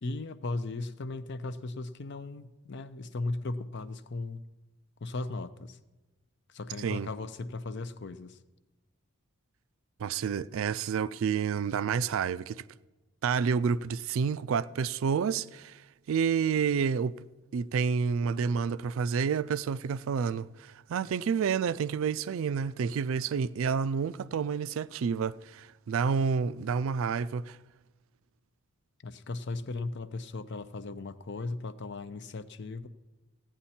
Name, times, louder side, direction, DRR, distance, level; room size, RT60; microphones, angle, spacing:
voice 1, 0.0-4.4 5.0-5.8 6.5-8.4 29.0-32.9, left 3 dB, 50° left, 0.5 m, -37 dB
voice 2, 10.0-12.6 13.2-15.8 16.1-17.2 17.5-27.6, right 6 dB, 65° right, 0.3 m, -29 dB
16.0 x 9.0 x 4.3 m
head